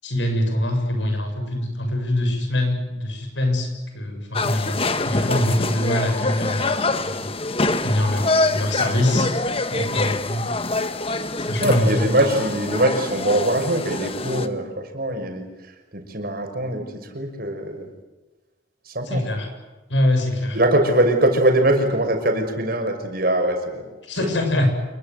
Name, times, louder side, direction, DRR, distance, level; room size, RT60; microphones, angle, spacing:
voice 1, 0.0-3.7 3.9-7.3 7.8-9.3 9.7-10.5 11.4-12.0 19.1-19.5 19.9-20.6 24.0-24.7, left 1 dB, 80° left, 4 dB, 7.6 m, -23 dB
sound 1, 4.3-14.5, left 2 dB, 30° left, 1.5 m, -25 dB
voice 2, 11.6-15.4 15.9-16.9 17.1-17.9 18.9-19.2 20.5-23.8 24.2-24.4, right 1 dB, 55° right, 4 dB, 6.1 m, -22 dB
28.5 x 23.0 x 8.1 m, 1.1 s
head